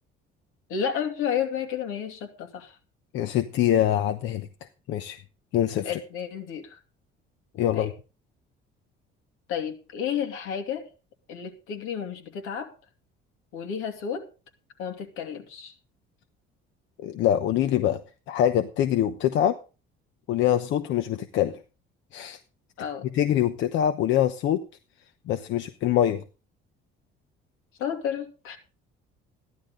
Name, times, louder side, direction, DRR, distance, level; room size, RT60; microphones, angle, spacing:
voice 1, 0.7-2.8 5.8-6.8 7.7-7.9 9.5-10.9 11.3-12.7 13.5-14.3 14.8-15.7 22.8-23.1 27.8-28.6, left 8 dB, 85° left, 5 dB, 2.8 m, -31 dB
voice 2, 3.1-4.5 4.9-5.2 5.5-6.0 7.6-7.9 17.0-18.0 18.3-19.6 20.3-21.6 22.1-22.4 23.1-24.6 25.3-26.2, left 11 dB, 65° left, 9 dB, 1.0 m, -24 dB
15.5 x 11.0 x 3.9 m, 0.34 s
cardioid pair, 150°, 21 cm